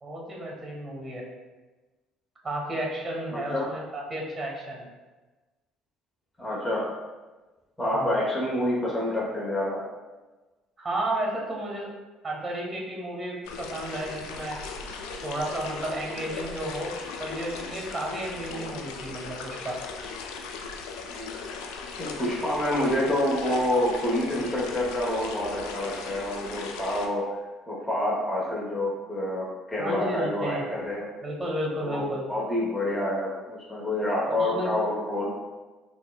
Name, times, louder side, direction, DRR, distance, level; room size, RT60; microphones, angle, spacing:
voice 1, 0.0-1.3 2.4-4.9 7.9-8.1 10.8-11.9 12.2-14.6 15.2-16.9 17.2-19.8 29.8-30.7 31.2-32.2 34.3-34.7, right 1 dB, 20° right, -1 dB, 1.3 m, -32 dB
voice 2, 3.3-3.7 6.4-6.9 7.8-9.8 18.5-18.8 21.2-21.3 22.0-27.3 27.7-31.1 31.8-35.3, left 1 dB, 10° left, -5 dB, 1.0 m, -28 dB
sound 1, 13.4-27.1, left 5 dB, 70° left, 0.4 m, -38 dB
5.8 x 2.1 x 2.4 m, 1.2 s
hypercardioid pair, 55°, 0 cm